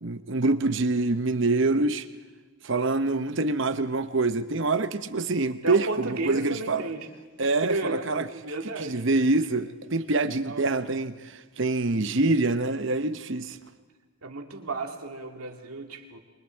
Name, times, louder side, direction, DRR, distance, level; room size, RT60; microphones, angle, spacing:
voice 1, 0.0-2.1 2.6-6.8 7.4-8.3 8.8-13.6, right 3 dB, 55° right, 0.9 m, -25 dB
voice 2, 5.6-7.1 7.4-9.0 10.4-10.6 14.2-16.2, right 3 dB, 90° right, 2.4 m, -33 dB
28.0 x 24.5 x 4.6 m
head